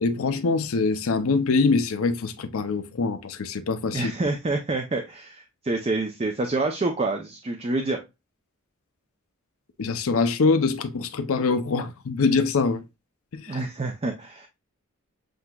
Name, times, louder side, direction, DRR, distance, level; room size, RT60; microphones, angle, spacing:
voice 1, 0.0-4.1 9.8-12.8 13.3-13.6, left 4 dB, 65° left, 0.5 m, -24 dB
voice 2, 3.9-8.0 13.5-14.5, right 2 dB, 25° right, 0.5 m, -27 dB
7.7 x 2.8 x 2.3 m
head